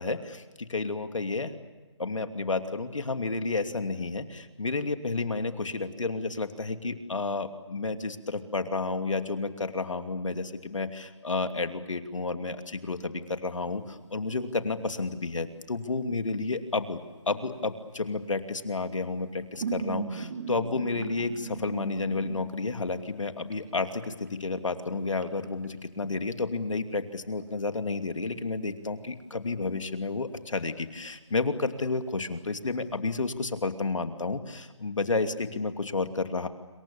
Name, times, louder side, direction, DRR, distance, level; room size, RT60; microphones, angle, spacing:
voice 1, 0.0-1.5 2.0-17.0 17.3-36.5, left 3 dB, 85° left, 7 dB, 2.8 m, -31 dB
sound 1, 13.5-15.8 16.1-18.0 19.0-23.5 23.8-26.1 27.2-27.4 27.7-27.8 28.1-28.7 29.0-29.1 29.5-30.0 30.5-31.0 31.3-31.4 31.8-31.9 32.2-32.9, right 5 dB, 35° right, 2.9 m, -40 dB
27.0 x 27.0 x 7.1 m, 1.2 s
hypercardioid pair, 170°, 16 cm